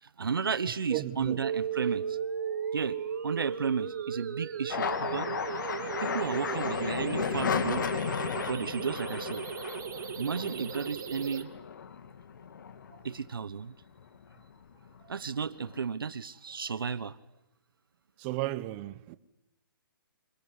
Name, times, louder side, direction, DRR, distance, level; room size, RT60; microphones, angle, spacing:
voice 1, 0.0-2.2 2.7-3.0 3.2-5.3 6.0-7.9 8.5-9.4 10.2-11.5 12.9-13.7 15.1-17.2, right 6 dB, 70° right, 1.2 m, -33 dB
voice 2, 0.9-1.5 18.2-19.2, right 16 dB, 30° right, 1.2 m, -34 dB
sound 1, 1.4-11.4, right 7 dB, 55° right, 2.6 m, -36 dB
sound 2, 4.7-13.4 13.8-14.6 14.9-15.8, left 7 dB, 55° left, 2.1 m, -35 dB
27.0 x 21.0 x 9.8 m
figure-of-eight pair, 135°, 12 cm